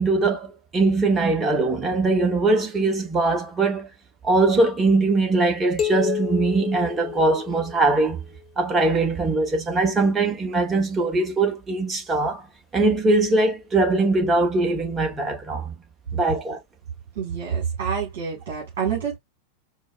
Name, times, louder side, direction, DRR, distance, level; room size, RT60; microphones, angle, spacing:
voice 1, 0.0-3.9 4.2-8.2 8.6-12.4 12.7-15.7 16.1-16.6, right 3 dB, 20° right, 1.2 m, -21 dB
sound 1, 5.8-8.2, left 10 dB, 25° left, 1.1 m, -30 dB
voice 2, 17.2-19.2, right 7 dB, 50° right, 1.9 m, -27 dB
4.6 x 2.3 x 2.4 m
figure-of-eight pair, 90°, 0 cm